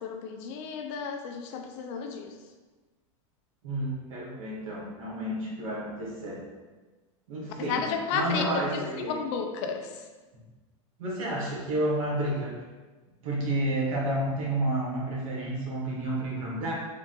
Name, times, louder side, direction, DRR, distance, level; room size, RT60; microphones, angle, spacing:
voice 1, 0.0-2.3 7.6-9.9, left 6 dB, 60° left, 5 dB, 0.5 m, -32 dB
voice 2, 3.6-6.4 7.3-9.3 11.0-12.5 13.2-16.7, right 1 dB, 85° right, -4 dB, 1.4 m, -30 dB
3.7 x 2.6 x 3.7 m, 1.3 s
supercardioid pair, 115°, 17 cm